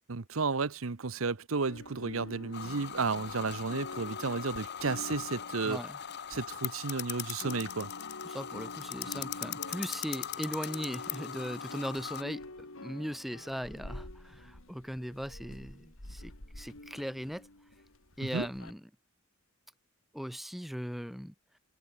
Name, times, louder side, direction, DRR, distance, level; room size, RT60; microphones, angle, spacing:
voice 1, 0.1-5.8 6.3-7.9 18.2-18.5, right 4 dB, 85° right, 0.9 m, -33 dB
sound 1, 1.7-7.0 7.3-18.7, left 1 dB, 85° left, 4.0 m, -47 dB
sound 2, 2.5-12.2, left 9 dB, 55° left, 0.9 m, -40 dB
voice 2, 5.6-6.0 8.2-12.4 12.8-17.5 18.2-18.8 20.1-21.3, equal, ahead, 1.1 m, -39 dB
head